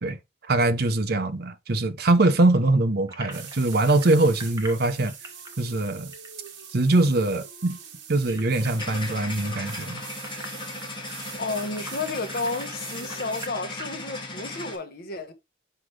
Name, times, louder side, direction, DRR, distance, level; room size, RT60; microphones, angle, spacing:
voice 1, 0.5-5.1 5.6-6.1 6.7-7.8 8.1-10.0 10.3-10.4, right 2 dB, 55° right, 0.8 m, -22 dB
sound 1, 3.1-7.0 7.3-7.4 7.7-14.0, right 1 dB, 20° right, 1.1 m, -44 dB
sound 2, 3.3-13.5, right 7 dB, 75° right, 1.4 m, -43 dB
sound 3, 8.8-14.8, left 2 dB, 25° left, 1.8 m, -37 dB
voice 2, 11.4-15.3, left 3 dB, 55° left, 1.2 m, -32 dB
5.9 x 4.9 x 3.2 m
head